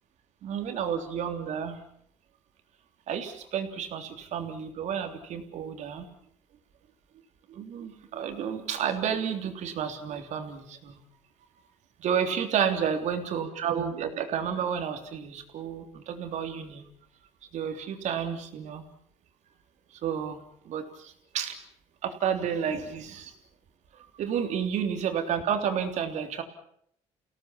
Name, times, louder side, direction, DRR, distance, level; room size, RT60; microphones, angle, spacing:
voice 1, 0.4-1.8 3.1-6.1 7.5-11.0 12.0-16.8 17.5-18.8 20.0-20.4 20.7-21.6 22.0-23.3 23.9-26.4, right 8 dB, 70° right, 5 dB, 3.5 m, -31 dB
30.0 x 17.5 x 7.3 m, 0.70 s
cardioid pair, 100°, 12 cm